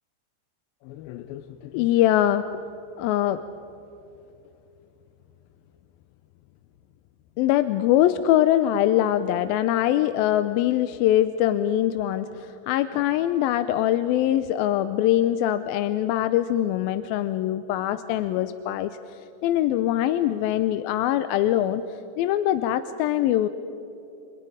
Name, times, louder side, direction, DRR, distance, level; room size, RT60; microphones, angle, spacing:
voice 1, 0.9-2.4 3.0-3.4 7.4-18.9 19.4-21.8 22.2-23.5, left 12 dB, 80° left, 11 dB, 2.3 m, -23 dB
29.0 x 26.5 x 5.0 m, 2.9 s
omnidirectional pair, 4.6 m